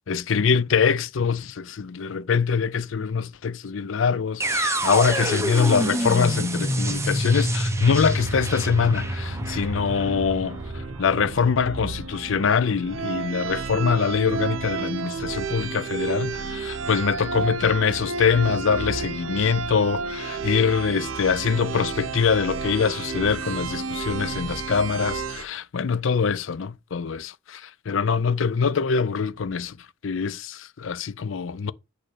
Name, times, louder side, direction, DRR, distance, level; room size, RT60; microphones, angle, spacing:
voice 1, 0.1-10.6 11.0-29.7 30.0-31.7, left 6 dB, 65° left, 0.5 m, -24 dB
sound 1, 4.4-12.4, equal, 15° right, 0.9 m, -27 dB
sound 2, 8.0-25.4, right 5 dB, 75° right, 0.6 m, -32 dB
8.7 x 3.2 x 6.5 m
head